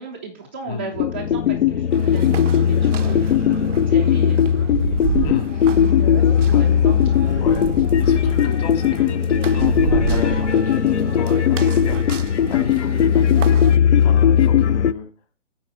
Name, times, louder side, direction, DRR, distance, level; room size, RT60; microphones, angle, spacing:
voice 1, 0.0-4.4 5.7-7.1, right 4 dB, 10° right, -4 dB, 0.3 m, -35 dB
sound 1, 1.0-14.9, left 8 dB, 65° left, 0.6 m, -18 dB
Human voice, 1.8-3.7 4.0-4.5 5.2-6.5 7.1-7.4 8.3-8.5 8.8-9.1 10.1-10.6 11.4-11.9 13.0-13.3, left 4 dB, 85° left, 2.0 m, -45 dB
sound 2, 1.9-13.8, right 9 dB, 80° right, 0.5 m, -31 dB
voice 2, 7.4-15.1, left 5 dB, 35° left, 5 dB, 2.2 m, -33 dB
8.9 x 4.3 x 6.8 m, 0.34 s
figure-of-eight pair, 135°, 37 cm